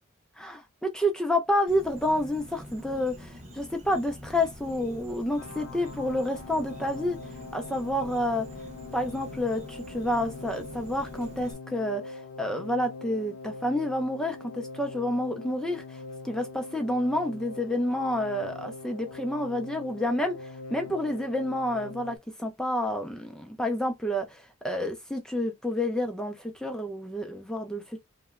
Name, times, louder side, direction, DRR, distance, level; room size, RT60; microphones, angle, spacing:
voice 1, 0.4-7.2 7.5-8.5 8.9-28.0, left 1 dB, 5° left, 0.3 m, -29 dB
Insect, 1.7-11.5, equal, 30° right, 0.7 m, -45 dB
sound 1, 5.4-22.2, left 3 dB, 70° left, 0.4 m, -42 dB
2.9 x 2.1 x 2.3 m
head